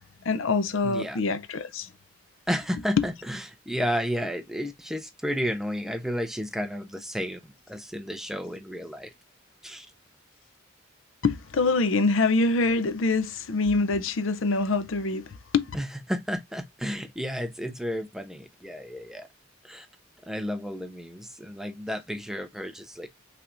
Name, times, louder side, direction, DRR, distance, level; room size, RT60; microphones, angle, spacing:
voice 1, 0.2-1.9 2.8-3.1 11.2-15.3 15.5-15.7, left 3 dB, 70° left, 0.5 m, -25 dB
voice 2, 0.8-1.2 2.5-3.4 3.7-7.4 7.7-9.1 9.6-9.9 15.7-19.2 19.7-19.9 20.3-23.1, equal, ahead, 0.5 m, -32 dB
5.7 x 3.4 x 2.5 m
head